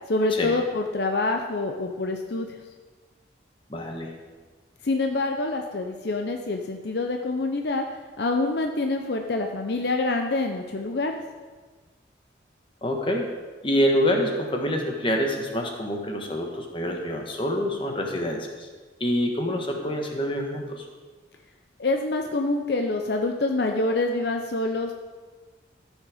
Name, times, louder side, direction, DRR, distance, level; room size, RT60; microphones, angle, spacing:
voice 1, 0.1-2.5 4.8-7.9 8.2-11.2 21.8-24.9, left 2 dB, 60° left, 3 dB, 0.6 m, -26 dB
voice 2, 3.7-4.1 12.8-13.3 13.6-18.7 19.0-20.9, equal, 30° left, 2 dB, 1.3 m, -26 dB
14.0 x 6.4 x 5.0 m, 1.4 s
head